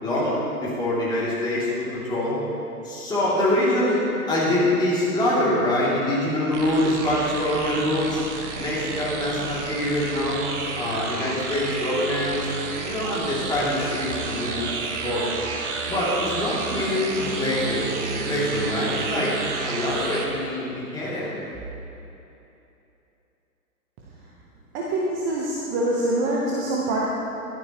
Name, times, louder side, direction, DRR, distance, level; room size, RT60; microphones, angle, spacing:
voice 1, 0.0-2.4 2.8-8.2 8.6-10.4 10.8-12.5 12.8-14.6 15.0-15.3 15.9-17.8 18.1-19.3 19.6-21.3, left 1 dB, 10° left, -8 dB, 3.0 m, -24 dB
sound 1, 6.5-20.3, right 4 dB, 50° right, 1.4 m, -31 dB
voice 2, 24.7-27.0, right 1 dB, 25° right, -4 dB, 1.2 m, -25 dB
15.0 x 11.5 x 3.2 m, 2.9 s
figure-of-eight pair, 125°, 46 cm